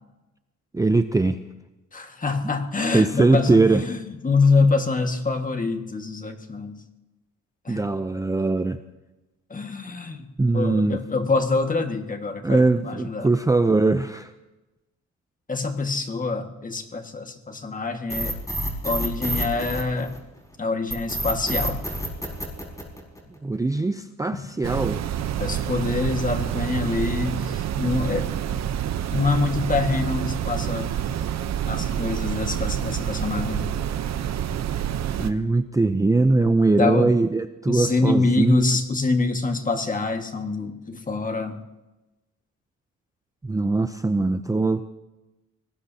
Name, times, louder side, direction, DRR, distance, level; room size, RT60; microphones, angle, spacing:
voice 1, 0.7-1.4 2.9-3.8 7.7-8.8 10.4-11.0 12.4-14.3 23.4-25.0 35.1-38.7 43.4-44.8, right 3 dB, 10° right, 9 dB, 0.6 m, -21 dB
voice 2, 1.9-6.8 7.6-7.8 9.5-10.3 10.5-13.3 15.5-18.4 18.8-20.2 20.6-21.8 24.3-24.4 25.4-28.6 29.1-30.9 31.7-33.7 36.8-37.2 37.7-41.6, left 3 dB, 25° left, 5 dB, 1.8 m, -25 dB
sound 1, 18.1-20.4 20.9-23.3, right 1 dB, 10° left, 5.5 m, -28 dB
sound 2, 24.6-35.3, right 10 dB, 60° right, 0.9 m, -27 dB
25.0 x 19.0 x 2.9 m, 1.1 s
cardioid pair, 90°, 30 cm